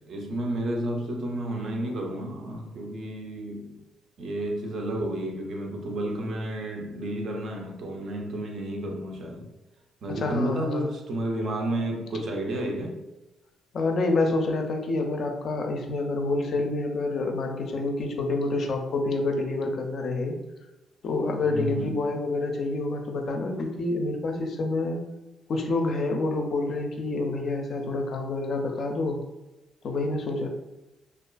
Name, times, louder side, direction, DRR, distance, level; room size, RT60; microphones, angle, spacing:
voice 1, 0.0-3.7 4.2-9.5 10.0-13.0 21.4-22.0, right 1 dB, 60° right, 0.5 m, -31 dB
voice 2, 10.2-10.9 13.7-20.3 21.0-25.0 25.5-29.2 29.8-30.5, left 2 dB, 55° left, 0.4 m, -27 dB
2.5 x 2.3 x 2.2 m
cardioid pair, 90°, 0 cm